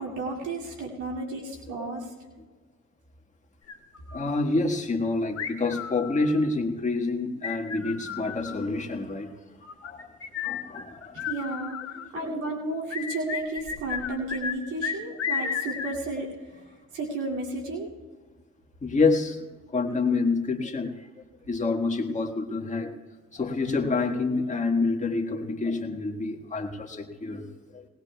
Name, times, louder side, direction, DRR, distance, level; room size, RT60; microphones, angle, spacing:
voice 1, 0.0-2.1 11.1-11.8 12.1-16.3 16.9-17.9, right 2 dB, 85° right, -3 dB, 2.6 m, -32 dB
sound 1, 3.7-4.4 5.4-6.5 7.4-8.7 9.6-12.1 12.9-14.6 14.8-16.0, left 7 dB, 55° left, 1.3 m, -33 dB
voice 2, 4.1-9.4 9.8-10.2 10.4-11.3 12.1-12.5 15.4-15.5 18.8-21.1 21.4-23.0 23.3-27.9, left 3 dB, 25° left, 2 dB, 1.5 m, -28 dB
20.0 x 19.0 x 2.3 m, 1.3 s
cardioid pair, 90°, 30 cm